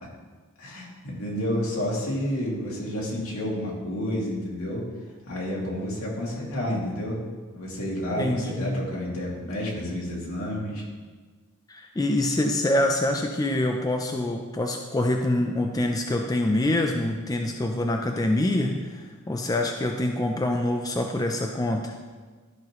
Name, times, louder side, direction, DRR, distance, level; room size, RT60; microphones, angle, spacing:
voice 1, 0.6-4.9 5.3-7.2 7.5-10.8, equal, 70° left, -4 dB, 2.4 m, -30 dB
voice 2, 8.2-8.8 11.7-21.9, left 1 dB, 15° left, 2 dB, 0.5 m, -25 dB
13.0 x 5.8 x 3.1 m, 1.4 s
head